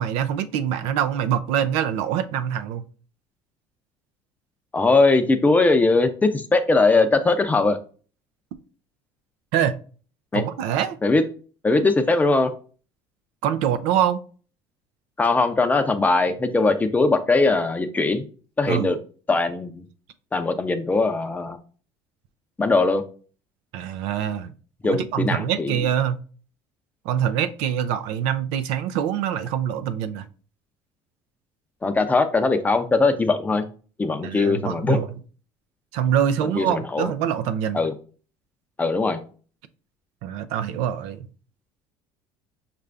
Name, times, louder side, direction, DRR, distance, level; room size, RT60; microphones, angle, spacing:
voice 1, 0.0-2.8 9.5-9.7 10.3-11.0 13.4-14.2 18.7-18.9 23.7-24.5 24.8-26.2 27.1-30.3 34.2-35.1 35.9-37.8 40.2-41.3, right 9 dB, 80° right, 0.5 m, -24 dB
voice 2, 4.7-7.8 10.3-10.4 11.0-11.2 11.6-12.5 15.2-18.2 18.6-19.0 19.3-19.8 20.3-21.6 22.6-23.0 24.8-25.8 31.8-33.6 34.0-35.0 36.4-37.1 37.7-37.9 38.8-39.2, left 3 dB, 15° left, 0.5 m, -20 dB
5.5 x 2.5 x 3.4 m
cardioid pair, 125°, 11 cm